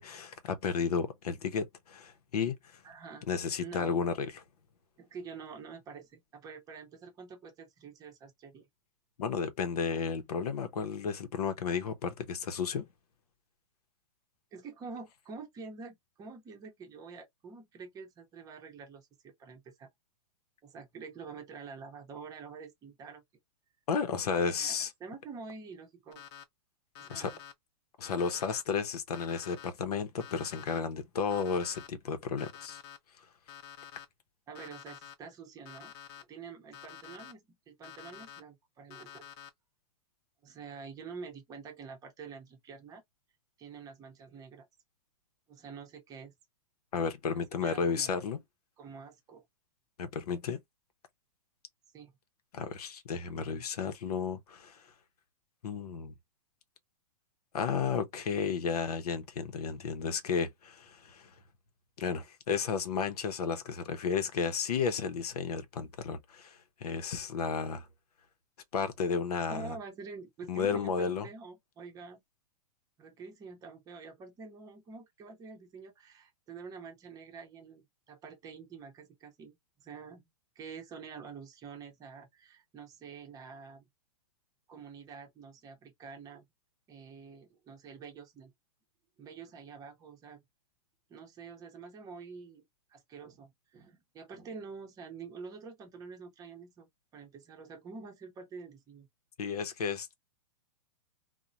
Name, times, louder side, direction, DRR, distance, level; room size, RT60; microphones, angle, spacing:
voice 1, 0.0-2.8 3.3-4.4 9.2-12.9 23.9-24.9 27.1-27.3 28.0-32.8 46.9-48.4 50.0-50.6 52.5-54.8 55.6-56.1 57.5-61.3 62.0-67.9 68.7-69.8 70.5-71.3 99.4-100.1, left 6 dB, 85° left, 0.7 m, -33 dB
voice 2, 2.8-3.3 3.6-4.0 5.0-8.7 14.5-19.9 20.6-23.2 24.6-26.2 27.0-27.4 34.5-39.3 40.4-43.0 43.6-44.7 45.5-46.3 47.5-48.1 48.8-49.4 51.9-52.1 69.4-72.2 73.0-80.2 80.6-83.8 84.7-86.5 86.9-88.5 89.2-90.4 91.1-99.1, right 5 dB, 20° right, 0.7 m, -47 dB
Alarm, 26.1-26.4 26.9-27.5 28.0-28.6 29.1-29.7 30.2-30.8 31.3-31.9 32.4-33.0 33.5-34.0 34.5-35.1 35.6-36.2 36.7-37.3 37.8-38.4 38.9-39.5, left 9 dB, 45° left, 0.7 m, -49 dB
2.9 x 2.1 x 2.5 m
hypercardioid pair, 140°, 19 cm